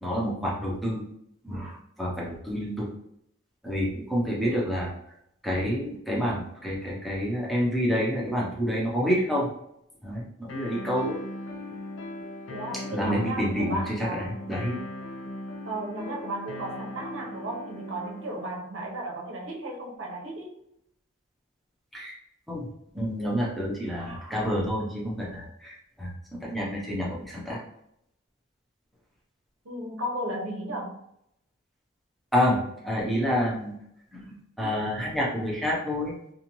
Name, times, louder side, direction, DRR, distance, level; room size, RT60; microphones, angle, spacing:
voice 1, 0.0-1.0 1.4-2.9 3.6-4.9 5.4-9.5 10.0-11.2 12.9-14.8 21.9-22.1 22.5-22.7 22.9-27.6 32.3-33.7 34.1-36.1, equal, ahead, -5 dB, 0.6 m, -28 dB
sound 1, 10.5-18.5, left 1 dB, 75° left, 0.5 m, -39 dB
voice 2, 12.5-14.3 15.6-20.5 29.6-31.0, right 1 dB, 75° right, -1 dB, 0.7 m, -34 dB
2.6 x 2.4 x 2.9 m, 0.75 s
head